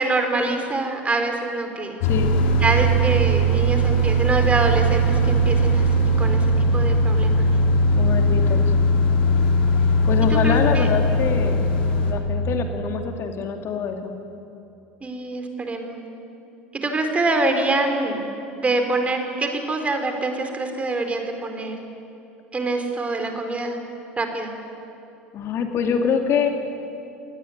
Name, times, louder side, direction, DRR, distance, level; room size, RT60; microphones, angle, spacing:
voice 1, 0.0-2.0 2.6-7.5 10.3-10.9 15.0-16.0 16.7-18.2 18.6-21.7 22.5-23.8 24.2-24.5, right 2 dB, 20° right, 5 dB, 4.3 m, -25 dB
sound 1, 2.0-12.1, right 1 dB, 70° left, 3.7 m, -19 dB
voice 2, 8.0-8.7 10.0-11.7 12.0-14.1 25.3-26.5, left 6 dB, 45° left, 5 dB, 2.5 m, -25 dB
27.0 x 19.0 x 9.3 m, 2.8 s
hypercardioid pair, 70°, 6 cm